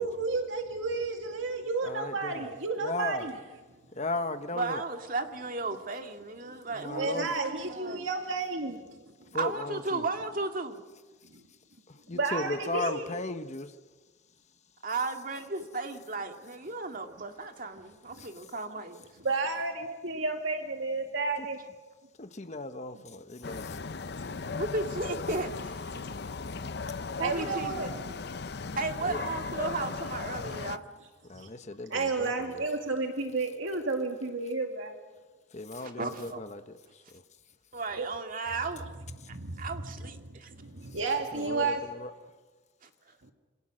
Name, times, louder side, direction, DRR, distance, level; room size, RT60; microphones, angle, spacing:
voice 1, 0.0-3.4 6.9-9.4 11.3-11.4 12.1-13.1 19.2-21.6 24.5-24.6 26.2-26.4 27.2-28.2 30.3-30.7 31.3-31.5 31.9-34.9 37.9-38.1 39.2-41.8 43.2-43.3, right 3 dB, 80° right, 3 dB, 2.3 m, -32 dB
voice 2, 1.8-2.5 2.8-3.3 4.0-4.8 6.7-7.3 9.3-10.1 11.9-13.7 18.2-18.3 22.2-23.8 29.0-29.2 31.3-32.7 35.5-37.0 41.3-42.1, left 2 dB, 35° left, 8 dB, 1.2 m, -36 dB
voice 3, 4.5-8.0 9.3-10.8 14.8-19.0 21.6-21.7 24.6-26.3 27.2-28.0 28.8-30.8 35.7-36.4 37.7-38.8 39.3-40.5 42.8-42.9, right 3 dB, 45° right, 5 dB, 2.3 m, -35 dB
sound 1, 23.4-30.8, left 4 dB, 55° left, 0.7 m, -37 dB
27.5 x 26.0 x 6.5 m, 1.3 s
head